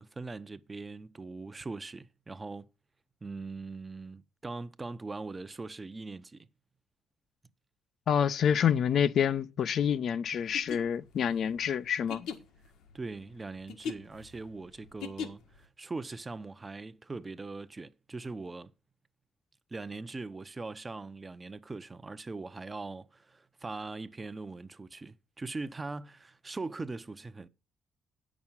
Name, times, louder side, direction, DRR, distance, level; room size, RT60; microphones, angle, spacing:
voice 1, 0.0-2.7 3.2-6.5 12.9-18.7 19.7-27.5, right 3 dB, 25° right, 0.8 m, -41 dB
voice 2, 8.1-12.3, left 8 dB, 65° left, 0.6 m, -27 dB
sound 1, 10.4-15.6, left 7 dB, 85° left, 1.6 m, -41 dB
8.7 x 6.2 x 7.2 m
cardioid pair, 90°, 0 cm